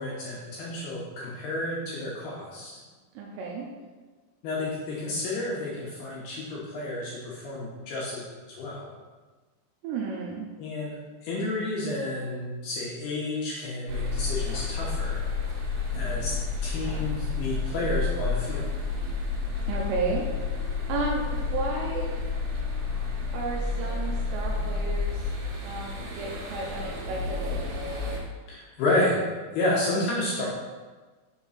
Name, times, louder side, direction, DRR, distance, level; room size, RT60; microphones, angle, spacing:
voice 1, 0.0-2.8 4.4-8.9 10.6-11.0 11.2-15.2 15.9-16.3 16.6-18.7 28.5-29.2 29.5-30.5, left 2 dB, 70° left, -6 dB, 2.5 m, -30 dB
voice 2, 3.2-3.7 9.8-10.5 19.7-20.3 20.9-22.1 23.3-25.2 25.6-27.7, right 3 dB, 80° right, -2 dB, 2.5 m, -32 dB
sound 1, 13.9-28.2, left 4 dB, 60° right, 3.1 m, -30 dB
7.0 x 3.8 x 5.6 m, 1.4 s
omnidirectional pair, 5.7 m